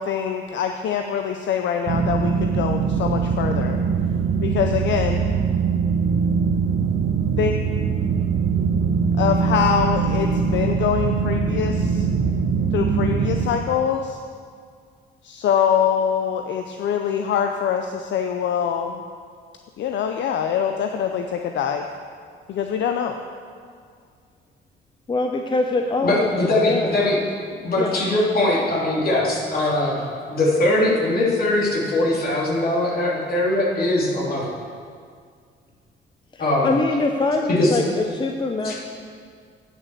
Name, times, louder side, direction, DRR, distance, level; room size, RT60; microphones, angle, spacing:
voice 1, 0.0-3.8 4.4-5.2 7.4-7.5 9.2-12.0 12.7-14.2 15.2-19.0 19.8-21.8 22.5-23.1, left 8 dB, 65° left, 5 dB, 0.6 m, -24 dB
sound 1, 1.9-13.5, right 5 dB, 60° right, 1.0 m, -22 dB
voice 2, 25.1-26.3 26.7-27.0 27.8-28.0 36.3-38.7, left 3 dB, 25° left, 3 dB, 0.6 m, -23 dB
voice 3, 26.0-27.2 27.6-30.0 30.3-34.5 36.4-36.7 37.5-37.8 38.6-38.7, left 1 dB, 50° left, -5 dB, 3.0 m, -21 dB
9.3 x 5.8 x 6.8 m, 2.1 s
cardioid pair, 90°, 20 cm